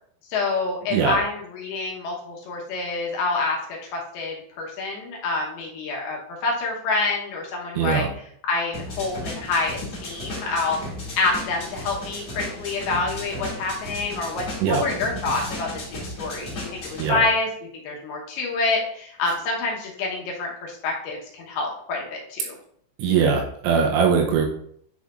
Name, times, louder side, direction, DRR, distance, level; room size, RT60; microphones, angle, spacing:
voice 1, 0.3-8.1 8.4-10.8 11.2-22.6, left 3 dB, 70° left, -2 dB, 2.5 m, -27 dB
voice 2, 7.8-8.1 14.6-14.8 17.0-17.2 23.0-24.5, right 6 dB, 80° right, 1 dB, 3.0 m, -21 dB
sound 1, 8.7-17.1, left 1 dB, 40° left, 2.0 m, -35 dB
10.0 x 4.2 x 2.4 m, 0.65 s
omnidirectional pair, 5.5 m